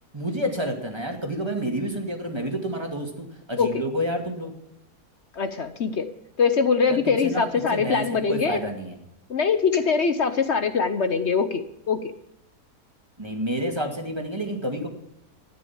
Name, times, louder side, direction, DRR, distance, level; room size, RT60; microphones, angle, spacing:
voice 1, 0.1-4.5 6.9-9.0 13.2-14.9, equal, 15° right, 2 dB, 2.1 m, -29 dB
voice 2, 5.4-6.1 6.4-8.6 9.3-12.0, left 5 dB, 50° left, 10 dB, 0.9 m, -23 dB
13.5 x 10.0 x 7.2 m, 0.83 s
omnidirectional pair, 1.7 m